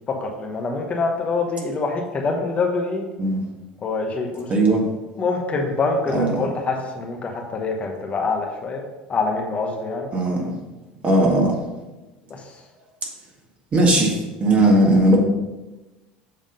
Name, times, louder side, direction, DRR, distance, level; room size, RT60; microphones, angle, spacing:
voice 1, 0.1-3.1 3.8-4.5 5.2-8.8 9.1-10.1 12.3-12.4, left 3 dB, 30° left, 2 dB, 1.1 m, -25 dB
voice 2, 4.5-4.8 6.1-6.5 10.1-10.6 11.0-11.6 13.7-15.2, right 1 dB, 30° right, 0 dB, 1.8 m, -18 dB
7.5 x 3.6 x 5.3 m, 1.1 s
hypercardioid pair, 85°, 4 cm